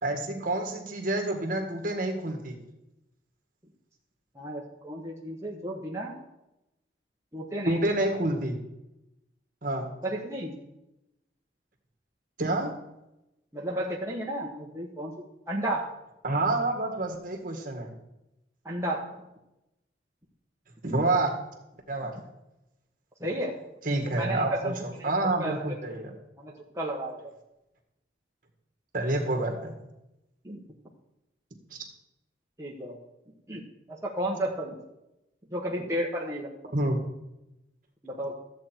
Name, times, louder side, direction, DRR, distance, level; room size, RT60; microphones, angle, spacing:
voice 1, 0.0-2.6 7.7-8.5 9.6-9.9 12.4-12.7 16.2-17.9 20.8-21.3 21.9-22.1 23.9-24.7 25.0-26.1 28.9-29.7 31.7-31.8 36.7-37.0, right 2 dB, 45° right, 2 dB, 1.9 m, -28 dB
voice 2, 4.3-6.1 7.3-7.8 10.0-10.5 13.5-15.1 15.5-15.9 18.6-19.3 22.0-22.1 23.2-23.6 24.0-25.1 25.4-25.7 26.4-27.3 30.4-30.6 32.6-33.0 33.5-33.6 33.9-34.8 35.5-36.8 38.0-38.3, right 1 dB, 15° right, -4 dB, 1.2 m, -33 dB
13.5 x 8.0 x 4.5 m, 0.91 s
head